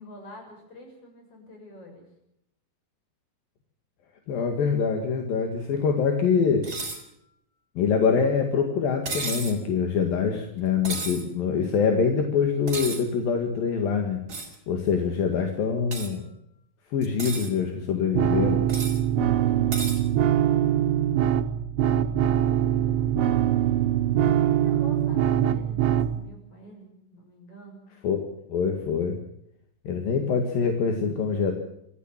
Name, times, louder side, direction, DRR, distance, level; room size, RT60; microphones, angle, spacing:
voice 1, 0.0-2.1 19.4-20.8 21.9-27.8, left 1 dB, 40° left, 2 dB, 8.1 m, -47 dB
voice 2, 4.3-6.7 7.8-14.2 14.7-16.2 16.9-18.6 28.0-28.2 28.5-29.2 29.9-31.5, left 6 dB, 75° left, 4 dB, 3.7 m, -24 dB
sound 1, 6.6-7.0 9.1-9.6 10.8-11.2 12.7-13.0 14.3-14.6 15.9-16.1 17.0-17.5 18.7-19.0 19.7-20.0, right 3 dB, 25° right, 4.1 m, -33 dB
sound 2, 18.1-26.1, right 11 dB, 85° right, 3.2 m, -23 dB
25.5 x 15.5 x 7.4 m, 0.78 s
omnidirectional pair, 4.2 m